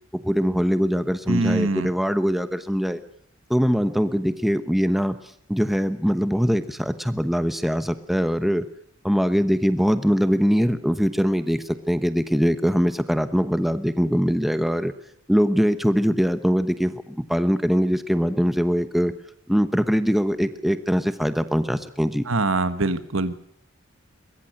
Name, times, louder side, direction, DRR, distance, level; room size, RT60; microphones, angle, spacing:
voice 1, 0.1-3.0 3.5-5.2 5.5-8.7 9.0-14.9 15.3-19.1 19.5-22.3, equal, ahead, 10 dB, 1.0 m, -22 dB
voice 2, 1.3-1.9 22.3-23.3, right 2 dB, 85° right, 11 dB, 1.5 m, -23 dB
23.0 x 21.0 x 6.6 m, 0.65 s
head